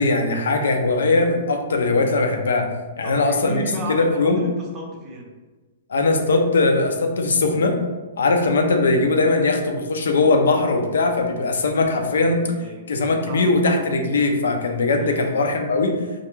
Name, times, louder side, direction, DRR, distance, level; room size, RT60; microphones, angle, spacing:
voice 1, 0.0-2.7 3.0-3.6 3.9-4.4 5.9-7.8 8.2-12.4 12.9-15.9, left 3 dB, 90° left, 4 dB, 0.4 m, -20 dB
voice 2, 3.0-5.3 12.4-12.9 13.3-13.5 15.0-15.5, right 1 dB, 20° right, -1 dB, 0.5 m, -34 dB
2.2 x 2.2 x 3.0 m, 1.3 s
hypercardioid pair, 150°, 0 cm